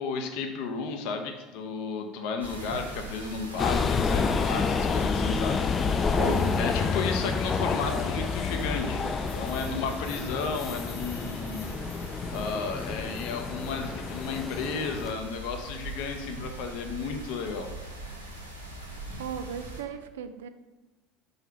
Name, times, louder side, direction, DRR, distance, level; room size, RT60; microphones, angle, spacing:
voice 1, 0.0-5.6 6.6-9.0 9.3-11.8 12.3-17.7, left 5 dB, 55° left, 5 dB, 0.7 m, -33 dB
sound 1, 2.4-19.8, right 1 dB, 90° right, 0.7 m, -41 dB
sound 2, 2.7-3.1 4.5-4.9 6.3-7.0 8.6-9.3 11.2-11.7 13.8-14.1 16.4-16.9 19.0-19.4, right 2 dB, 15° right, 1.1 m, -45 dB
sound 3, 3.6-15.1, left 5 dB, 30° left, 0.4 m, -29 dB
voice 2, 6.2-6.6 19.2-20.5, right 8 dB, 70° right, 9 dB, 0.4 m, -36 dB
4.5 x 4.0 x 5.5 m, 1.1 s
figure-of-eight pair, 65°, 0 cm